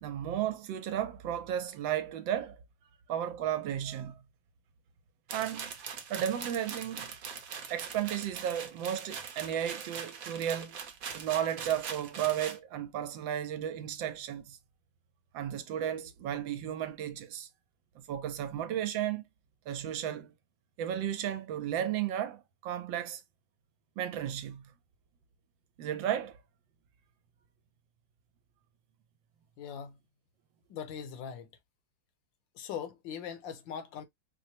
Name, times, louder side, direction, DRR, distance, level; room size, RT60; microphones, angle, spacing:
voice 1, 0.0-2.6 3.1-4.2 5.3-5.7 6.1-7.1 7.7-10.8 11.1-14.6 15.3-17.5 18.0-19.2 19.7-20.3 20.8-23.2 24.0-24.7 25.8-26.4, right 10 dB, 80° right, 1.3 m, -34 dB
sound 1, 5.3-12.6, right 7 dB, 60° right, 1.0 m, -42 dB
voice 2, 29.6-30.0 30.7-31.5 32.5-34.0, left 8 dB, 75° left, 1.4 m, -40 dB
4.6 x 2.0 x 2.7 m
omnidirectional pair, 2.1 m